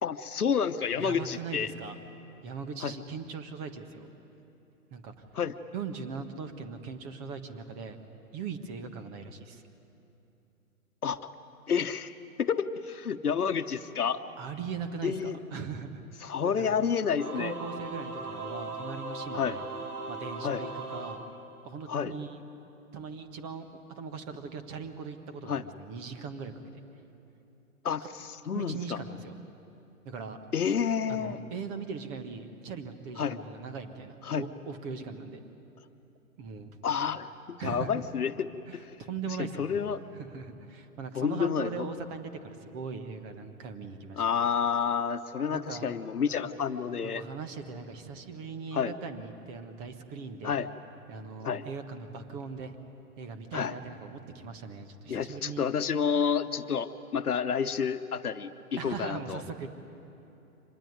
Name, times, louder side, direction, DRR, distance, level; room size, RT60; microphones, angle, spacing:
voice 1, 0.0-1.7 2.8-2.9 5.3-5.5 11.0-11.2 11.7-12.1 12.4-14.2 15.0-15.4 16.2-17.5 19.3-19.6 20.4-20.6 21.9-22.1 25.5-25.6 27.8-29.0 30.5-31.4 33.2-33.4 34.3-34.5 36.8-38.8 39.4-40.0 41.1-41.9 44.2-47.2 48.7-48.9 50.4-50.7 51.4-51.6 53.5-53.7 55.1-59.4, left 7 dB, 75° left, 11 dB, 1.2 m, -29 dB
voice 2, 1.0-2.0 2.4-4.1 4.9-5.1 5.7-8.0 8.3-9.6 14.4-16.0 16.4-16.8 17.4-19.7 20.1-21.2 21.6-22.4 22.9-26.5 28.0-28.1 28.5-29.4 30.0-30.4 31.1-35.4 36.4-36.8 37.6-38.0 38.7-39.8 40.1-44.2 45.4-45.9 46.9-50.6 51.1-52.8 53.2-55.7 58.8-59.7, right 5 dB, 25° right, 8 dB, 1.4 m, -40 dB
Singing / Musical instrument, 17.1-22.0, right 2 dB, 90° right, 3.3 m, -39 dB
25.0 x 20.0 x 9.5 m, 2.9 s
figure-of-eight pair, 130°, 45 cm